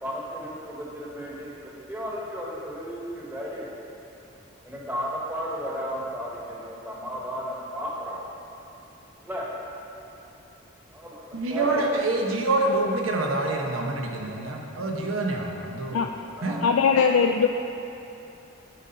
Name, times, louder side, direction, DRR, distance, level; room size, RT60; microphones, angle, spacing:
voice 1, 0.0-3.7 4.6-8.1 9.2-9.5 10.9-11.9 16.4-17.1, equal, 10° right, -5 dB, 1.2 m, -34 dB
voice 2, 11.3-16.1 16.4-16.6, right 2 dB, 90° right, 0 dB, 1.0 m, -26 dB
voice 3, 16.6-17.5, left 6 dB, 85° left, 4 dB, 0.3 m, -20 dB
10.5 x 4.2 x 5.2 m, 2.8 s
head